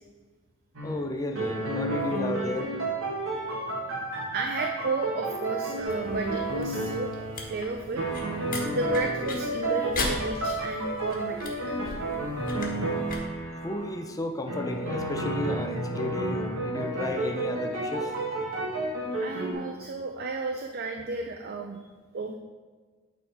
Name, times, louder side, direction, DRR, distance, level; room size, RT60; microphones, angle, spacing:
sound 1, 0.7-1.0 1.3-7.6 8.0-14.0 14.5-19.5, right 2 dB, 90° right, 1.6 m, -31 dB
voice 1, 0.8-2.7 13.6-18.2, left 1 dB, 15° left, 5 dB, 0.5 m, -33 dB
voice 2, 3.3-3.6 4.3-8.1 8.7-11.4 11.6-11.8 19.2-21.8 22.1-22.4, right 3 dB, 50° right, 3 dB, 0.6 m, -32 dB
sound 2, 5.8-13.2, left 2 dB, 45° left, 1.3 m, -38 dB
8.8 x 4.0 x 4.8 m, 1.4 s
head